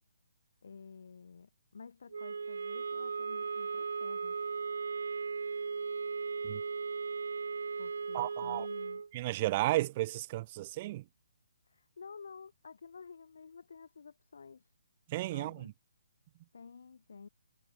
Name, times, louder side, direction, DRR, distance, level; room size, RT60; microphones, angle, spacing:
voice 1, 0.6-4.4 7.8-9.0 11.7-14.7 15.3-15.7 16.5-17.3, left 5 dB, 70° left, 6.4 m, -51 dB
sound 1, 2.1-9.1, right 5 dB, 75° right, 2.1 m, -37 dB
voice 2, 8.1-8.7 9.1-11.0 15.1-15.7, right 17 dB, 30° right, 0.3 m, -33 dB
hypercardioid pair, 155°, 0 cm